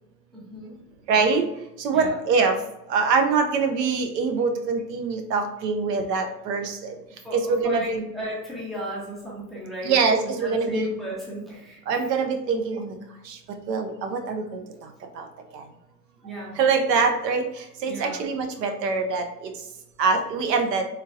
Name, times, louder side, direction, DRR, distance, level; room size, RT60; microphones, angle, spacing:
voice 1, 0.3-0.8 1.9-2.2 7.2-12.1 16.2-16.6 17.9-18.2, equal, ahead, -6 dB, 0.6 m, -35 dB
voice 2, 1.1-1.4 1.8-2.6 2.9-7.0 7.3-8.1 9.8-10.9 11.9-12.9 13.2-13.4 13.7-14.9 15.1-15.3 15.5-15.6 16.5-19.5 20.0-20.8, right 4 dB, 75° right, 5 dB, 0.8 m, -24 dB
3.5 x 2.8 x 2.4 m, 0.88 s
hypercardioid pair, 125°, 50 cm